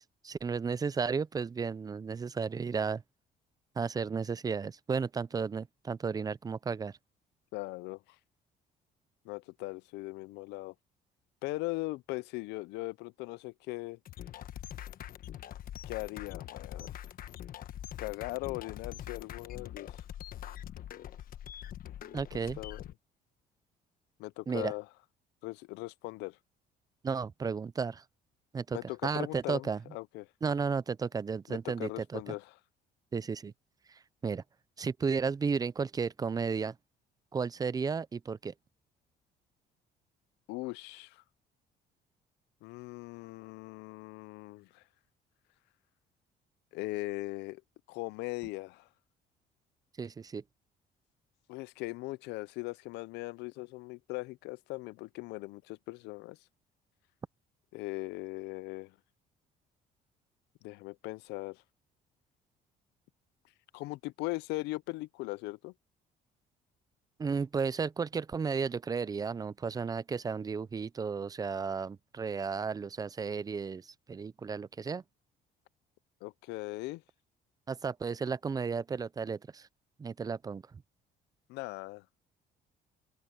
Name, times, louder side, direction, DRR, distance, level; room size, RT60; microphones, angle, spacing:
voice 1, 0.0-3.0 3.8-7.0 22.1-22.6 24.5-24.7 27.0-28.0 28.5-29.8 30.4-32.2 33.1-33.5 33.9-34.4 34.8-36.8 37.3-38.5 50.0-50.4 67.2-75.0 77.7-79.7 80.0-80.8, right 5 dB, 20° right, 0.5 m, -33 dB
voice 2, 7.5-8.0 9.2-10.7 11.4-14.0 15.9-17.0 18.0-19.9 22.3-22.9 24.2-24.9 25.4-26.4 28.7-30.3 31.5-32.5 40.5-41.2 42.6-44.8 46.7-47.6 47.9-48.9 51.5-56.4 57.7-58.9 60.6-61.6 63.7-65.7 76.2-77.0 81.5-82.0, left 22 dB, 90° left, 0.5 m, -39 dB
sound 1, 14.1-22.9, left 11 dB, 60° left, 1.2 m, -44 dB
open air
cardioid pair, 110°, 17 cm